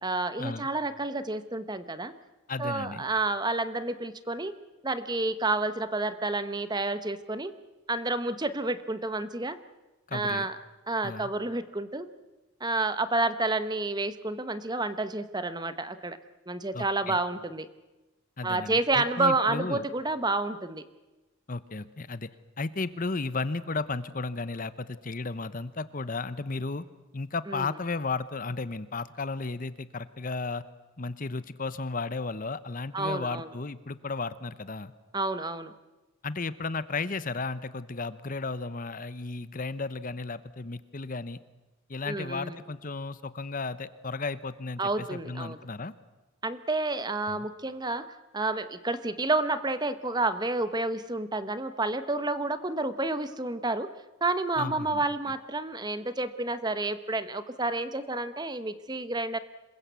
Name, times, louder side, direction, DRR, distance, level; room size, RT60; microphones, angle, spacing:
voice 1, 0.0-2.1 2.6-4.5 4.8-7.5 7.9-9.6 10.1-10.6 10.9-12.1 12.6-16.2 16.5-17.7 18.4-20.8 27.5-27.7 32.9-33.5 35.1-35.7 42.0-42.6 44.8-45.6 46.4-48.0 48.3-53.9 54.2-59.4, right 2 dB, 20° right, 12 dB, 1.1 m, -30 dB
voice 2, 2.5-3.0 10.1-10.5 11.0-11.3 16.7-17.2 18.4-19.8 21.5-22.3 22.6-26.8 27.1-30.6 31.0-34.9 36.2-41.4 41.9-45.9 47.3-47.4 54.6-55.0, left 3 dB, 40° left, 14 dB, 0.9 m, -34 dB
26.5 x 22.0 x 8.3 m, 1.1 s
head